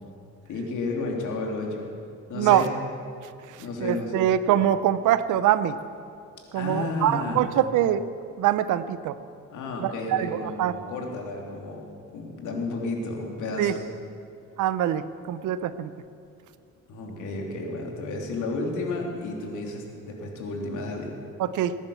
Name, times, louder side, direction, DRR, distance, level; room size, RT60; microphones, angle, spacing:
voice 1, 0.5-1.9 2.3-2.7 3.6-4.3 6.5-7.6 9.5-11.9 12.1-13.8 16.9-21.1, left 2 dB, 80° left, 0 dB, 3.1 m, -32 dB
voice 2, 2.3-2.7 3.5-5.8 6.5-8.1 8.4-9.2 9.8-10.8 13.6-13.8 14.6-15.9 21.4-21.8, right 11 dB, 85° right, 14 dB, 0.8 m, -24 dB
19.0 x 10.5 x 7.1 m, 2.5 s
cardioid pair, 90°, 30 cm